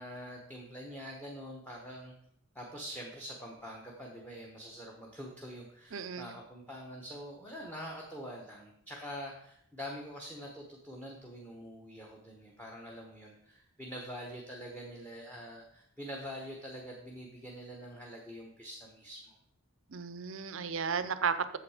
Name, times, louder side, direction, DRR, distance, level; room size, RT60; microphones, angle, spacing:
voice 1, 0.0-2.1 2.5-19.4, equal, 10° left, -1 dB, 1.1 m, -45 dB
voice 2, 5.9-6.3 19.9-21.6, right 6 dB, 60° right, 12 dB, 0.6 m, -34 dB
8.5 x 7.2 x 4.9 m, 0.72 s
head